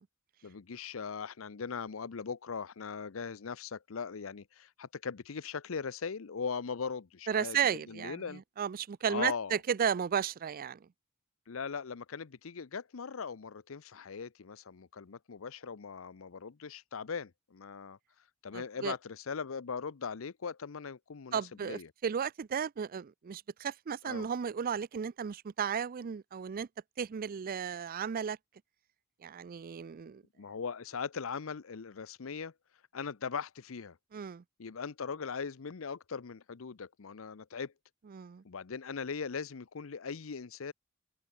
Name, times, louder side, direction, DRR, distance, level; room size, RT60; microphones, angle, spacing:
voice 1, 0.4-8.4 9.1-9.6 11.5-18.0 18.4-21.9 24.0-24.3 30.4-32.5 32.9-34.0 34.6-37.7 38.4-40.7, left 5 dB, 75° left, 0.7 m, -40 dB
voice 2, 7.3-10.8 18.5-19.0 21.3-26.7 27.0-28.4 29.2-30.2 34.1-34.4 38.1-38.4, right 7 dB, 45° right, 0.4 m, -34 dB
open air
head